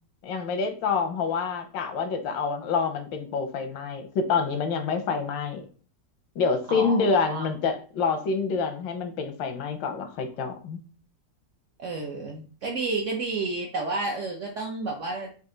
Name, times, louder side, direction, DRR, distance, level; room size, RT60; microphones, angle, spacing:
voice 1, 0.2-5.6 6.4-10.8, left 5 dB, 85° left, 7 dB, 1.4 m, -27 dB
voice 2, 6.7-7.5 11.8-15.3, right 3 dB, 70° right, 1 dB, 0.7 m, -31 dB
4.3 x 2.5 x 3.7 m, 0.41 s
omnidirectional pair, 2.0 m